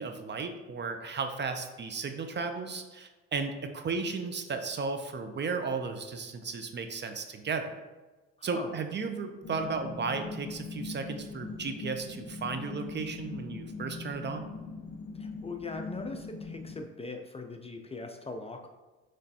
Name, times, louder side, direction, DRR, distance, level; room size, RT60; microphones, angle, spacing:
voice 1, 0.0-7.7 8.4-14.5, right 4 dB, 35° right, 6 dB, 0.5 m, -34 dB
voice 2, 8.4-8.7 15.1-18.7, left 3 dB, 20° left, 4 dB, 0.4 m, -40 dB
sound 1, 9.4-16.8, left 4 dB, 60° left, 0.9 m, -41 dB
6.0 x 3.2 x 2.8 m, 1.2 s
cardioid pair, 90°, 30 cm